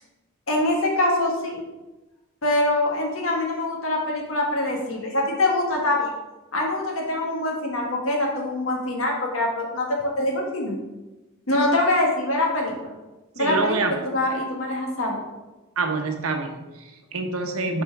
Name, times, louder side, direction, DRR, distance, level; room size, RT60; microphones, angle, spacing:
voice 1, 0.5-1.6 2.4-6.1 6.5-10.8 11.5-12.9 13.3-13.7 14.1-15.2, left 1 dB, 70° left, 0 dB, 1.4 m, -24 dB
voice 2, 13.4-14.0 15.8-17.8, right 3 dB, 85° right, 4 dB, 0.9 m, -26 dB
5.7 x 4.4 x 4.6 m, 1.1 s
head